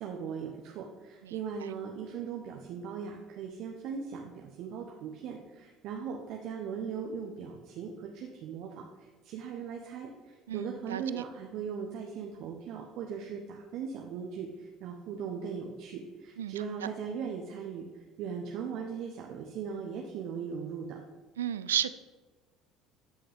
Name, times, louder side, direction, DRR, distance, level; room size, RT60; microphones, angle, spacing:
voice 1, 0.0-21.0, right 6 dB, 60° right, 1 dB, 1.0 m, -39 dB
voice 2, 10.5-11.2 16.4-16.5 21.4-21.9, right 10 dB, 85° right, 15 dB, 0.4 m, -33 dB
13.0 x 7.0 x 3.6 m, 1.3 s
hypercardioid pair, 60°, 0 cm